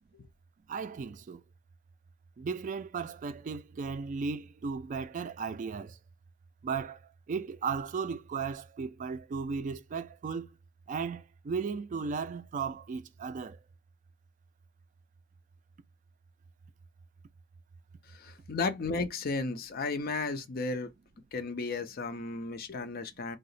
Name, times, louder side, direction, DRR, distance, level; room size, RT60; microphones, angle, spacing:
voice 1, 0.7-1.4 2.4-6.0 6.6-10.5 10.9-13.6, right 5 dB, 40° right, 0.3 m, -36 dB
voice 2, 18.1-20.9 21.3-23.4, left 3 dB, 50° left, 0.5 m, -34 dB
2.8 x 2.0 x 4.0 m
head